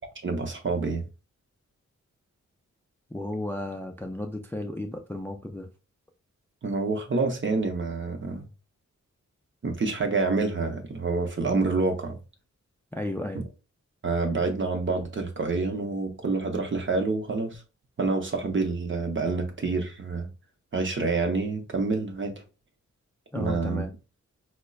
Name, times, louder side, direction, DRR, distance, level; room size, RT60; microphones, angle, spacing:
voice 1, 0.2-1.1 6.6-8.5 9.6-12.2 14.0-17.6 18.0-20.3 20.7-22.3 23.3-23.8, right 3 dB, 40° right, 0.7 m, -27 dB
voice 2, 3.1-5.7 12.9-13.4 23.3-23.9, left 1 dB, 10° left, 0.3 m, -33 dB
5.1 x 2.1 x 2.3 m
wide cardioid pair, 125°, 29 cm